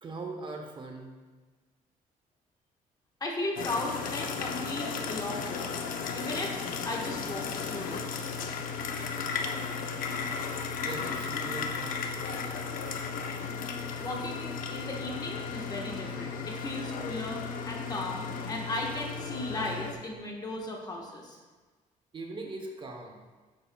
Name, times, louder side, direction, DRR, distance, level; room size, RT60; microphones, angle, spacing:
voice 1, 0.0-1.1 10.7-12.6 22.1-23.2, right 3 dB, 35° right, 2 dB, 0.8 m, -41 dB
voice 2, 3.2-5.7 6.1-6.6 6.8-8.0 14.0-21.4, left 2 dB, 25° left, -1 dB, 1.3 m, -36 dB
sound 1, 3.6-19.9, left 5 dB, 75° left, 0.7 m, -35 dB
11.0 x 6.8 x 2.3 m, 1.3 s
cardioid pair, 140°, 14 cm